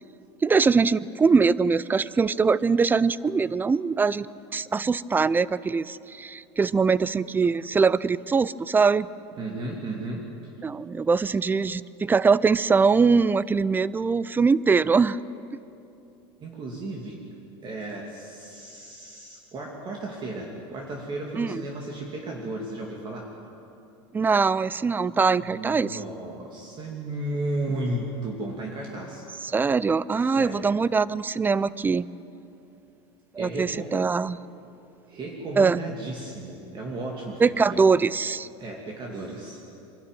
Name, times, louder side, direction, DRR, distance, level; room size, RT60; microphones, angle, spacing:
voice 1, 0.4-4.3 4.5-9.1 10.6-15.2 21.4-21.6 24.1-26.0 29.4-32.1 33.3-34.4 35.6-35.8 37.4-38.5, right 5 dB, 15° right, 19 dB, 0.4 m, -22 dB
voice 2, 9.4-10.5 11.2-11.3 16.4-17.2 17.6-23.3 25.4-29.3 30.4-30.7 33.4-34.0 35.1-37.9 38.6-39.6, right 2 dB, 35° right, -1 dB, 2.5 m, -34 dB
24.5 x 12.5 x 9.1 m, 2.8 s
supercardioid pair, 125°, 14 cm